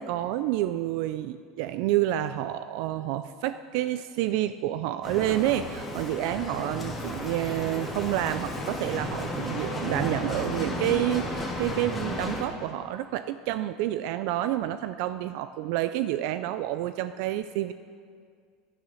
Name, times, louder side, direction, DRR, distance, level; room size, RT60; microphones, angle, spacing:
voice 1, 0.0-17.7, right 13 dB, 65° right, 12 dB, 0.3 m, -29 dB
Bicycle, 5.0-12.4, left 1 dB, 10° left, 1.8 m, -33 dB
10.0 x 9.1 x 6.3 m, 2.2 s
supercardioid pair, 130°, 0 cm